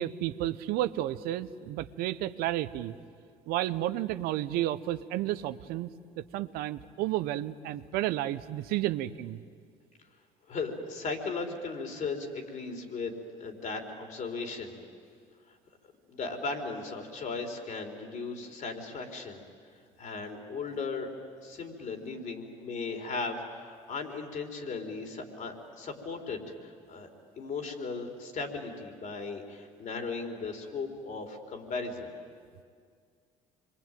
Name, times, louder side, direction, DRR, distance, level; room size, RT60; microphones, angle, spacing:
voice 1, 0.0-2.9 3.5-5.9 6.2-9.4, right 14 dB, 70° right, 13 dB, 0.9 m, -32 dB
voice 2, 10.5-13.1 13.4-14.8 15.5-15.6 16.1-19.4 20.0-21.1 21.4-27.1 27.4-32.1, left 4 dB, 50° left, 4 dB, 4.3 m, -37 dB
26.5 x 23.0 x 9.2 m, 2.1 s
hypercardioid pair, 70°, 16 cm